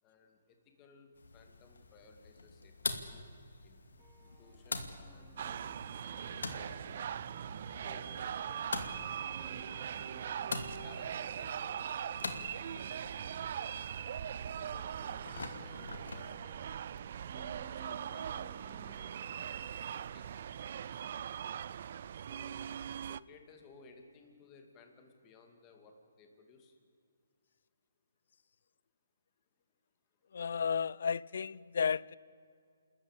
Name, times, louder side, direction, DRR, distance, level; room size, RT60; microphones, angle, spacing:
voice 1, 0.0-3.0 3.6-6.0 6.3-7.1 7.7-9.7 10.7-12.5 12.9-13.9 14.6-16.7 17.6-19.7 20.1-20.6 20.9-21.1 22.1-26.8 30.1-30.3 31.7-31.8, left 4 dB, 20° left, 2.6 m, -60 dB
sound 1, 1.1-16.4, left 3 dB, 85° left, 2.4 m, -45 dB
sound 2, 4.0-20.6, right 4 dB, 15° right, 1.5 m, -59 dB
sound 3, 5.4-23.2, right 9 dB, 50° right, 0.5 m, -41 dB
voice 2, 30.3-32.2, left 6 dB, 65° left, 0.5 m, -33 dB
28.5 x 14.0 x 8.5 m
hypercardioid pair, 155°, 0 cm